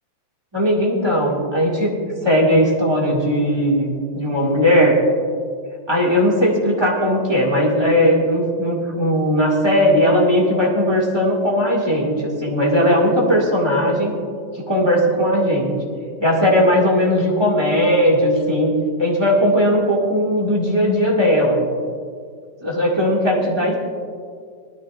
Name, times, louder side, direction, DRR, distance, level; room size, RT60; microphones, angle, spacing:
voice 1, 0.5-5.0 5.9-14.2 14.5-15.7 16.2-21.6 22.6-23.8, equal, 15° right, -3 dB, 1.9 m, -18 dB
19.5 x 12.5 x 2.4 m, 2.1 s
omnidirectional pair, 2.1 m